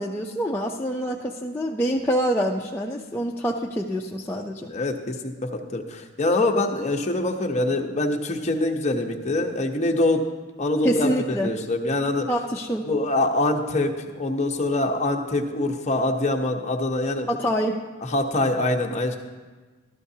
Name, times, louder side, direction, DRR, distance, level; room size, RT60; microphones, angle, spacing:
voice 1, 0.0-4.7 10.8-11.5 12.3-12.8 17.3-17.8, equal, 10° left, -2 dB, 0.4 m, -26 dB
voice 2, 4.7-10.3 10.6-12.3 12.9-17.3 18.0-19.2, left 2 dB, 30° left, 2 dB, 0.8 m, -24 dB
13.0 x 12.5 x 2.7 m, 1.3 s
head